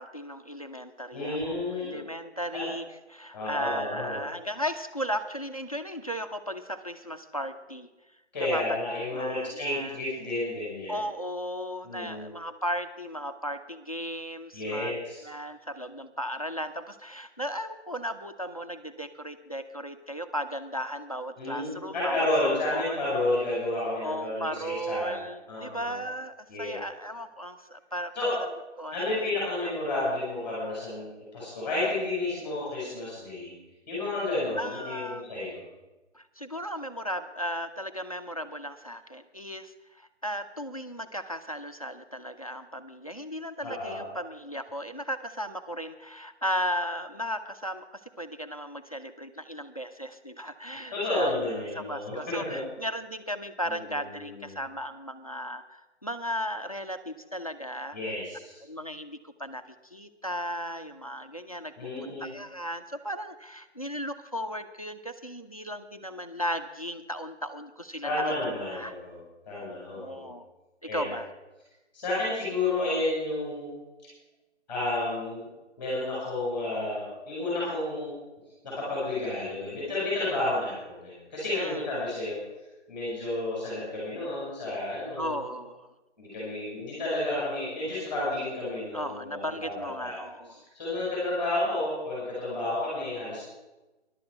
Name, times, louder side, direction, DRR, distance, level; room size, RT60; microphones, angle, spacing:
voice 1, 0.0-2.8 3.1-7.9 8.4-8.6 9.1-10.0 10.9-15.0 15.2-22.3 22.7-23.0 24.0-28.1 28.8-29.2 29.6-29.7 34.6-35.4 36.1-51.3 51.7-58.2 58.6-59.6 59.9-61.7 62.0-68.1 68.7-68.9 69.6-70.5 70.9-71.3 81.6-81.8 85.2-85.9 88.9-90.6, equal, 30° left, 9 dB, 0.5 m, -36 dB
voice 2, 1.1-2.0 2.5-2.6 3.3-4.2 8.3-11.0 11.8-12.3 14.5-15.2 21.4-25.1 25.5-26.0 26.5-26.7 28.1-28.3 28.9-33.5 33.9-35.6 43.6-44.0 50.9-52.6 53.7-54.6 57.9-58.6 61.8-62.3 68.0-69.2 69.4-70.3 70.9-71.1 71.9-73.7 74.7-75.5 75.8-78.1 78.6-82.4 82.9-85.4 86.2-90.2 90.5-93.4, left 2 dB, 5° left, -8 dB, 5.0 m, -31 dB
14.5 x 11.5 x 4.6 m, 1.1 s
figure-of-eight pair, 175°, 35 cm